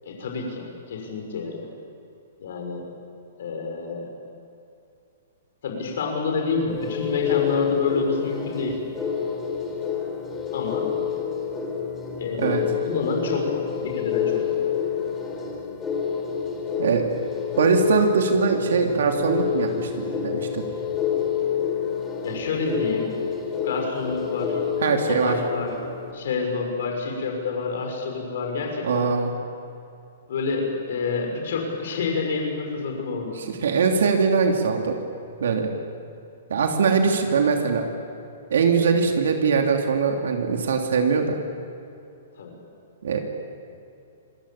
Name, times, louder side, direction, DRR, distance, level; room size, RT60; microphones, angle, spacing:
voice 1, 0.0-1.7 2.4-2.9 3.4-4.1 5.6-8.8 10.5-10.9 12.2-14.6 22.2-23.2 23.6-24.6 25.1-25.7 26.1-29.1 30.3-33.4 42.4-42.5, left 4 dB, 65° left, 1 dB, 6.1 m, -28 dB
sound 1, 6.7-26.1, left 7 dB, 15° left, 3.6 m, -28 dB
voice 2, 17.6-20.6 24.8-25.4 28.8-29.3 33.3-35.0 35.4-35.7 36.5-37.9 38.5-41.4 43.0-43.2, right 5 dB, 80° right, 3 dB, 3.1 m, -22 dB
26.5 x 20.5 x 8.7 m, 2.6 s
hypercardioid pair, 155°, 0 cm